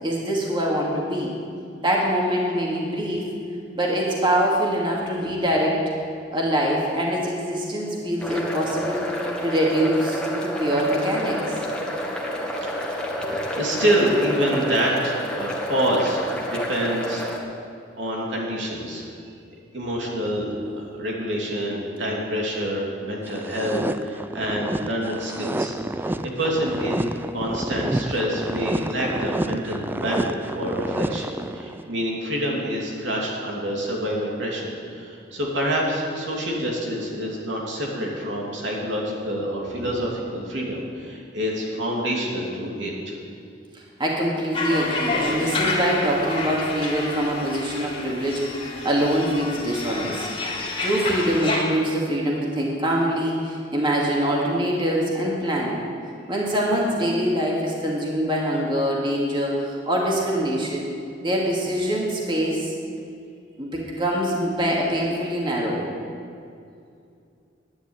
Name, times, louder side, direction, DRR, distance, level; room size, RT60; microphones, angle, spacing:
voice 1, 0.0-1.3 1.8-3.3 3.7-5.8 6.3-9.0 9.4-11.5 13.2-13.4 29.7-29.8 39.8-39.9 44.0-50.3 50.8-55.8 56.3-60.9 61.2-62.7 63.6-65.9, equal, 25° right, -3 dB, 2.3 m, -24 dB
sound 1, 8.2-17.4, equal, 5° left, 1.7 m, -29 dB
voice 2, 12.6-17.3 18.0-19.1 19.7-43.1, equal, 75° right, -2 dB, 2.9 m, -27 dB
sound 2, 23.3-31.9, right 1 dB, 10° right, 0.3 m, -29 dB
sound 3, 44.5-51.6, left 3 dB, 30° left, 2.3 m, -29 dB
11.0 x 10.5 x 8.9 m, 2.4 s
head